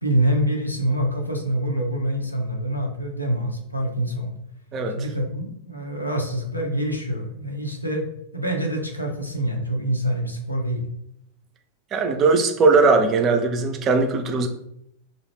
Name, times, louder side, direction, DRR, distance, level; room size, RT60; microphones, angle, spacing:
voice 1, 0.0-4.3 4.9-8.1 8.3-10.8, right 1 dB, 85° left, 1 dB, 0.4 m, -25 dB
voice 2, 4.7-5.1 11.9-14.5, right 3 dB, 30° right, 5 dB, 0.4 m, -19 dB
2.4 x 2.0 x 3.3 m, 0.75 s
figure-of-eight pair, 90°, 0 cm